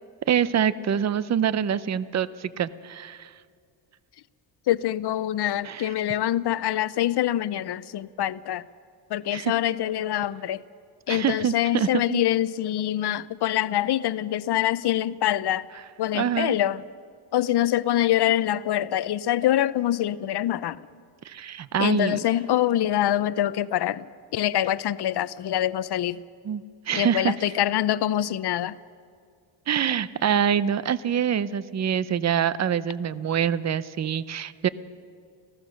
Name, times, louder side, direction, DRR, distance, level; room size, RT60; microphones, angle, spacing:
voice 1, 0.3-3.3 5.6-5.9 9.3-9.5 11.1-12.2 16.1-16.6 21.2-22.2 26.4-27.5 29.7-34.7, right 8 dB, 35° right, 0.6 m, -25 dB
voice 2, 4.7-8.6 9.1-10.6 11.1-15.7 16.0-16.8 17.3-20.8 21.8-24.1 24.3-26.2 26.9-28.8, left 12 dB, 55° left, 0.6 m, -25 dB
26.5 x 16.0 x 6.4 m
cardioid pair, 105°, 49 cm